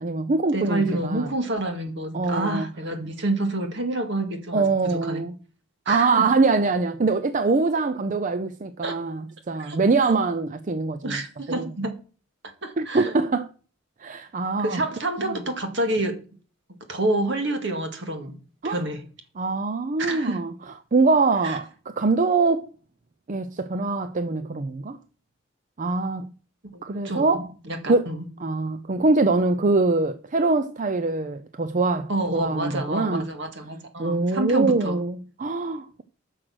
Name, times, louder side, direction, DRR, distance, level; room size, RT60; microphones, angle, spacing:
voice 1, 0.0-1.3 2.1-2.7 4.5-5.4 5.9-9.2 9.5-11.2 11.5-11.7 12.8-13.5 14.0-14.8 15.2-15.4 18.6-18.8 19.4-20.5 20.9-22.7 23.3-25.0 25.8-26.3 26.8-27.5 27.9-28.1 28.4-33.3 34.0-36.0, right 3 dB, 40° right, 0.5 m, -23 dB
voice 2, 0.5-5.2 5.9-6.3 8.8-8.9 9.6-9.8 11.0-12.0 12.6-13.1 14.6-16.2 16.9-18.4 18.6-19.0 20.0-20.5 21.4-21.6 26.7-28.3 32.1-35.0, right 1 dB, 60° right, 1.9 m, -28 dB
10.0 x 6.4 x 6.3 m
head